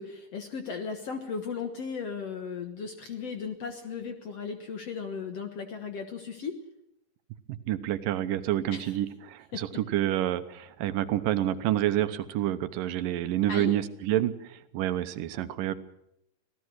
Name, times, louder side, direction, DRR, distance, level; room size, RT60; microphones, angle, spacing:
voice 1, 0.0-6.6 8.7-9.0 9.5-9.6 13.5-13.7, left 5 dB, 55° left, 5 dB, 2.2 m, -36 dB
voice 2, 7.7-15.7, right 13 dB, 80° right, 11 dB, 2.6 m, -28 dB
26.0 x 17.0 x 6.4 m, 0.83 s
omnidirectional pair, 3.8 m